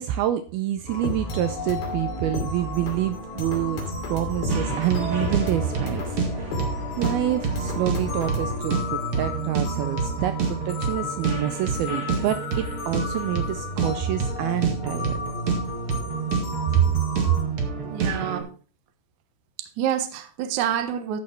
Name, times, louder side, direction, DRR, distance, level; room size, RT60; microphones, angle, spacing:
voice 1, 0.0-3.8 4.1-15.2 16.7-16.9 17.3-17.4, right 12 dB, 80° right, 2.3 m, -27 dB
sound 1, 0.9-17.4, left 3 dB, 60° left, 4.3 m, -33 dB
sound 2, 4.5-18.4, right 5 dB, 45° right, 2.1 m, -28 dB
voice 2, 17.8-18.5 19.6-21.2, right 10 dB, 65° right, 1.9 m, -27 dB
13.0 x 6.4 x 4.5 m
omnidirectional pair, 4.8 m